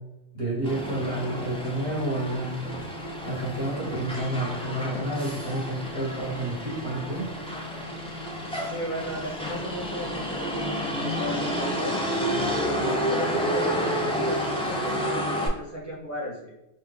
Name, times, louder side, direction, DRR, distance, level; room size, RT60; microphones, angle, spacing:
voice 1, 0.3-2.6 3.2-7.3, right 1 dB, 50° left, -7 dB, 1.8 m, -30 dB
Motor vehicle (road), 0.6-15.5, equal, 10° left, 0.3 m, -30 dB
voice 2, 8.7-12.0 12.5-16.5, left 1 dB, 15° right, -7 dB, 0.9 m, -35 dB
3.6 x 2.4 x 3.4 m, 0.92 s
omnidirectional pair, 1.3 m